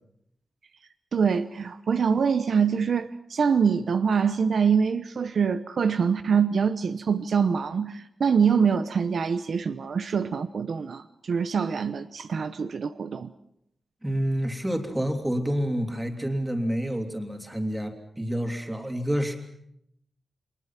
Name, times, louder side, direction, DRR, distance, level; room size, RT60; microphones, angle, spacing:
voice 1, 1.1-13.3, right 6 dB, 65° right, 0.8 m, -24 dB
voice 2, 14.0-19.4, equal, 10° right, 3.1 m, -28 dB
29.5 x 23.0 x 5.9 m
wide cardioid pair, 140°, 0 cm